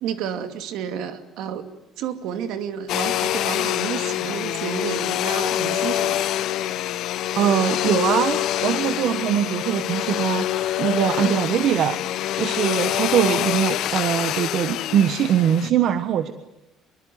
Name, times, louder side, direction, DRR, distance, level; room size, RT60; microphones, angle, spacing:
voice 1, 0.0-1.7 2.0-6.3, right 8 dB, 75° right, 8 dB, 2.6 m, -31 dB
Domestic sounds home sounds, 2.9-15.7, left 13 dB, 65° left, 0.9 m, -25 dB
voice 2, 7.4-12.0 12.4-16.3, right 9 dB, 55° right, 10 dB, 1.3 m, -22 dB
26.0 x 23.0 x 9.4 m, 0.91 s
cardioid pair, 135°, 0 cm